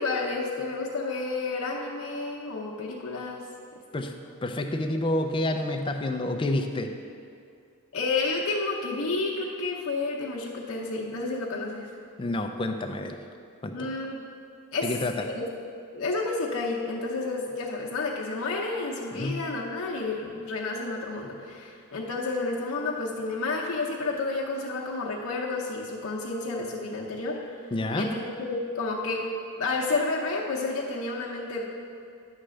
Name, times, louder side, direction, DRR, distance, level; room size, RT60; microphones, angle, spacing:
voice 1, 0.0-3.5 7.9-11.9 13.7-14.2 14.7-15.5 15.9-27.4 27.9-29.2 29.6-31.6, left 3 dB, 80° left, -3 dB, 0.8 m, -30 dB
voice 2, 4.4-6.9 12.2-13.1 13.6-13.9 14.8-15.1 19.1-19.4 27.7-28.1, left 1 dB, 25° left, 5 dB, 0.4 m, -28 dB
9.8 x 3.3 x 6.3 m, 2.4 s
head